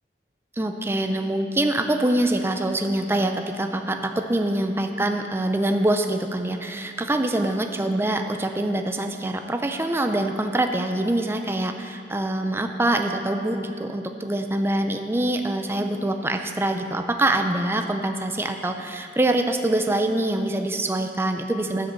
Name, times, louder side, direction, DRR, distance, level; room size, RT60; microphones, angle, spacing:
voice 1, 0.6-21.9, right 1 dB, 15° right, 5 dB, 0.4 m, -24 dB
9.8 x 7.6 x 7.4 m, 2.6 s
head